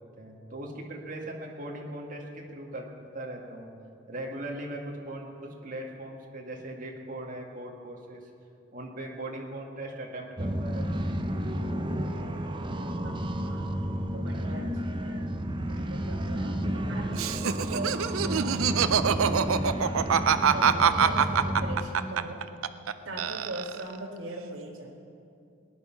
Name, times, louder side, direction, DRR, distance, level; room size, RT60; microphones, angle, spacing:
voice 1, 0.2-2.9 3.1-3.7 4.1-8.3 8.7-11.1, right 1 dB, 40° right, 0 dB, 1.9 m, -39 dB
sound 1, 10.4-21.8, equal, 25° right, 0.7 m, -31 dB
voice 2, 13.0-13.7 14.1-15.2 15.7-22.4 23.0-24.9, right 1 dB, 65° right, -3 dB, 2.0 m, -41 dB
Laughter, 17.1-22.9 23.2-24.0, right 7 dB, 85° right, 0.5 m, -24 dB
18.5 x 10.5 x 5.9 m, 2.5 s
head